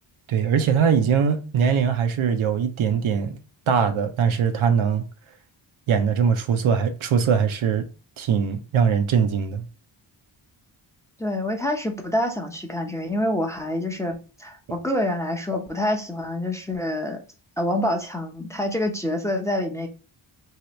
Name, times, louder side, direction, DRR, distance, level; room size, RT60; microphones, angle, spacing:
voice 1, 0.3-3.4 3.7-5.0 5.9-7.9 8.2-9.6, right 7 dB, 75° right, 0.7 m, -21 dB
voice 2, 11.2-17.2 17.6-19.9, left 1 dB, 5° left, 0.6 m, -26 dB
3.0 x 2.9 x 3.0 m
cardioid pair, 60°, 50 cm